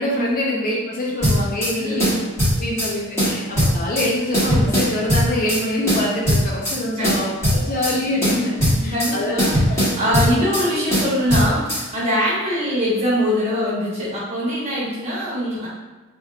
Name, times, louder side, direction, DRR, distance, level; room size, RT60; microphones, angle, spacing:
voice 1, 0.0-2.2 2.5-8.5 8.8-9.4 9.7-9.8 10.1-10.5, left 1 dB, 40° left, -3 dB, 0.6 m, -25 dB
sound 1, 1.2-1.7 2.0-2.9 3.2-4.1 4.3-5.6 5.9-6.8 7.0-7.9 8.2-9.1 9.4-10.6 10.9-11.8, equal, 15° left, 1.4 m, -19 dB
voice 2, 1.7-2.1 7.0-7.1 7.4-7.6 8.7-9.5 9.9-15.7, equal, 30° right, -8 dB, 1.2 m, -23 dB
3.4 x 2.9 x 2.4 m, 1.3 s
head